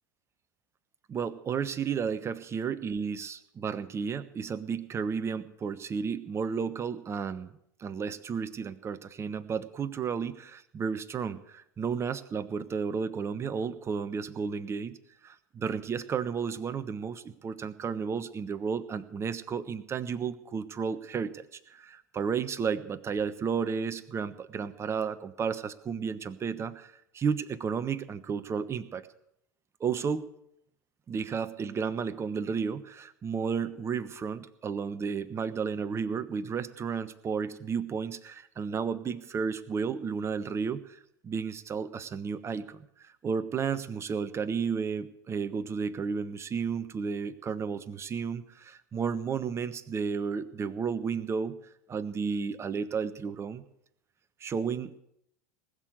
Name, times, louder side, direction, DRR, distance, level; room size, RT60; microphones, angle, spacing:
voice 1, 1.1-7.5 7.8-15.0 15.2-29.1 29.8-30.3 31.1-40.8 41.2-51.6 51.9-53.6 54.4-55.0, right 6 dB, 25° right, 12 dB, 1.2 m, -32 dB
19.5 x 6.7 x 9.3 m, 0.73 s
figure-of-eight pair, 80°, 10 cm